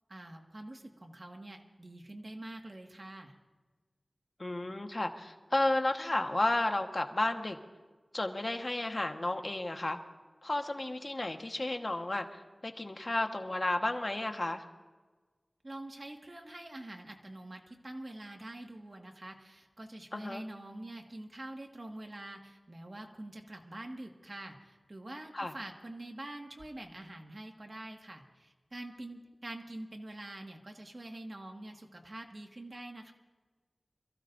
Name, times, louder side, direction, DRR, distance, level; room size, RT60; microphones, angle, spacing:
voice 1, 0.1-3.4 15.6-33.1, right 1 dB, 45° right, 2 dB, 1.8 m, -45 dB
voice 2, 4.4-7.6 8.1-10.0 10.4-14.6 20.1-20.4 25.3-25.5, left 2 dB, 45° left, 4 dB, 1.3 m, -32 dB
27.0 x 15.0 x 2.6 m, 1.3 s
wide cardioid pair, 55°, 0 cm